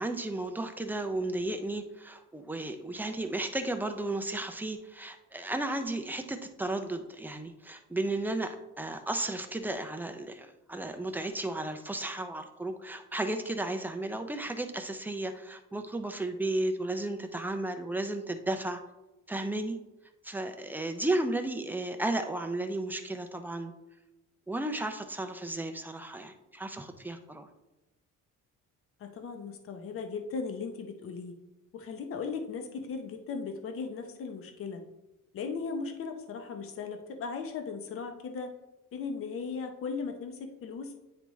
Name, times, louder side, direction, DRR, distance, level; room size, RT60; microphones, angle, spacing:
voice 1, 0.0-18.8 19.3-19.8 20.2-23.7 24.5-27.5, right 2 dB, 5° right, 6 dB, 0.3 m, -34 dB
voice 2, 29.0-31.3 31.7-34.8 35.3-38.5 38.9-40.9, left 5 dB, 45° left, 5 dB, 0.7 m, -37 dB
9.5 x 3.4 x 3.1 m, 0.98 s
cardioid pair, 155°, 32 cm